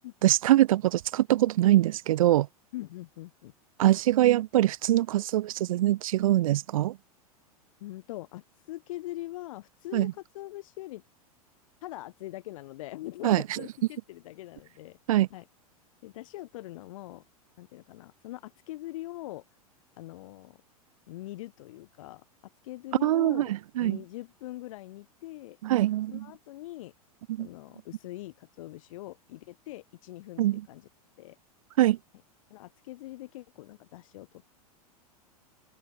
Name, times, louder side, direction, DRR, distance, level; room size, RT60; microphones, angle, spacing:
voice 1, 0.2-2.5 3.8-7.0 9.9-10.1 13.2-13.4 15.1-15.3 23.0-23.5 23.8-24.0 25.6-26.2 27.4-27.5 30.4-30.6 31.8-32.0, right 14 dB, 60° right, 0.6 m, -23 dB
voice 2, 2.7-3.5 7.8-11.0 11.8-15.0 15.3-15.5 16.0-17.2 17.6-19.4 20.0-20.6 21.1-22.3 22.6-23.5 23.8-25.6 26.1-26.9 27.4-30.9 31.2-31.4 32.5-34.4, left 17 dB, 60° left, 5.2 m, -42 dB
open air
figure-of-eight pair, 95°, 19 cm